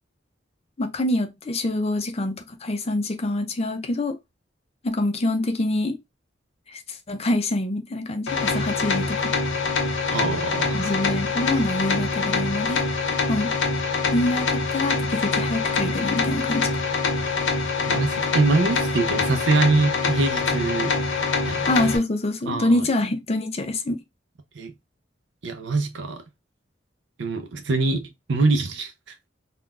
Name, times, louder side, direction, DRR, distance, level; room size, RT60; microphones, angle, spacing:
voice 1, 0.8-4.2 4.8-6.0 6.7-9.3 10.7-12.8 13.3-13.5 14.1-16.8 21.7-24.0, left 1 dB, 35° left, 0.5 m, -25 dB
sound 1, 8.3-22.0, left 4 dB, 85° left, 0.7 m, -25 dB
voice 2, 10.1-10.9 17.8-21.0 21.4-21.7 22.5-22.9 24.5-24.7 25.4-26.2 27.2-29.2, right 3 dB, 70° right, 0.6 m, -24 dB
3.7 x 2.2 x 2.3 m
head